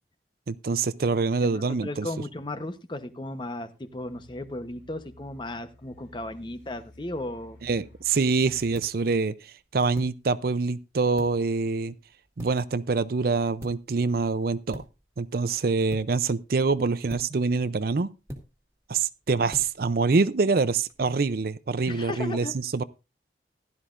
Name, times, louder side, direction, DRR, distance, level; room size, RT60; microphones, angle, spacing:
voice 1, 0.5-2.1 7.6-11.9 12.4-14.8 15.2-18.1 18.9-22.8, right 4 dB, 50° right, 0.5 m, -25 dB
voice 2, 1.5-7.6 21.9-22.5, left 1 dB, 25° left, 0.9 m, -35 dB
sound 1, 3.8-8.8, left 1 dB, 85° left, 3.9 m, -53 dB
sound 2, 8.0-21.0, equal, 15° right, 1.9 m, -47 dB
15.5 x 12.0 x 2.5 m
head